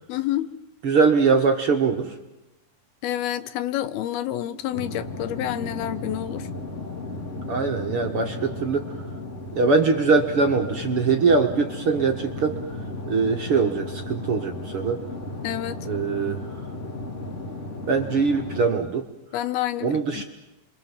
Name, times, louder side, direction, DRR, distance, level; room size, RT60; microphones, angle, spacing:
voice 1, 0.1-0.5 3.0-6.5 15.4-15.8 19.3-19.9 20.1-20.2, left 12 dB, 80° left, 13 dB, 3.0 m, -28 dB
voice 2, 0.8-2.1 7.5-8.9 9.6-12.6 13.1-15.0 15.8-16.4 17.9-19.0 19.8-20.2, right 4 dB, 50° right, 5 dB, 2.0 m, -22 dB
sound 1, 4.7-18.7, left 2 dB, 20° left, 3.0 m, -35 dB
29.5 x 24.0 x 7.5 m, 0.93 s
omnidirectional pair, 4.3 m